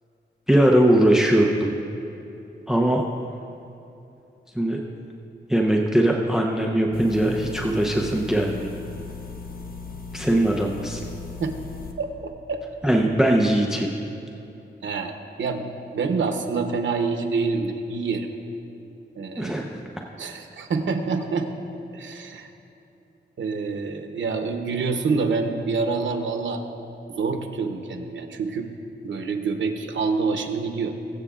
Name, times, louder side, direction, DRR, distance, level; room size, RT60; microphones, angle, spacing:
voice 1, 0.5-1.8 2.7-3.0 4.5-4.8 5.5-8.7 10.1-11.0 12.8-13.9 19.4-19.8, right 1 dB, 5° right, 1 dB, 0.7 m, -20 dB
sound 1, 6.9-11.9, left 4 dB, 50° left, 0.9 m, -37 dB
voice 2, 12.0-12.6 14.8-15.1 15.4-15.6 15.9-18.3 19.2-19.5 20.2-21.5 21.9-22.5 23.4-26.6 27.1-28.7 29.0-30.9, right 4 dB, 90° right, 5 dB, 0.9 m, -26 dB
22.5 x 8.0 x 2.5 m, 2.8 s
wide cardioid pair, 105°, 19 cm